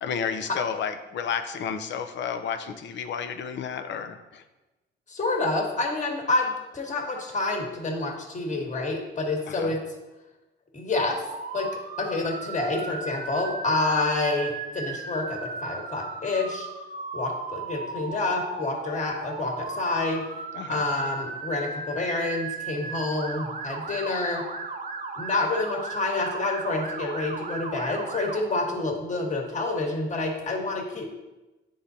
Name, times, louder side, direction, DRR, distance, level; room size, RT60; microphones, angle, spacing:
voice 1, 0.0-4.4 9.5-9.7 20.5-20.8, left 7 dB, 65° left, 8 dB, 0.6 m, -31 dB
voice 2, 5.1-9.8 10.7-11.2 11.5-16.7 17.1-20.2 20.7-24.4 25.1-31.1, left 2 dB, 35° left, 1 dB, 1.4 m, -28 dB
Motor vehicle (road) / Siren, 11.1-28.4, right 4 dB, 45° right, 1.0 m, -36 dB
10.0 x 3.8 x 2.7 m, 1.1 s
cardioid pair, 90°, 20 cm